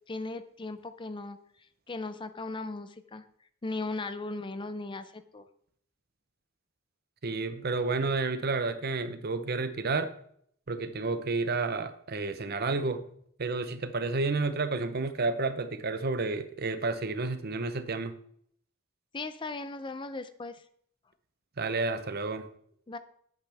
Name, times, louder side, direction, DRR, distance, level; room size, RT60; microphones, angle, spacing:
voice 1, 0.1-1.4 1.9-3.2 3.6-5.4 19.1-20.6 22.9-23.0, left 3 dB, 25° left, 0.5 m, -37 dB
voice 2, 7.2-10.1 10.7-13.0 13.4-18.1 21.6-22.5, right 3 dB, 50° right, 0.8 m, -30 dB
11.5 x 9.2 x 3.4 m
head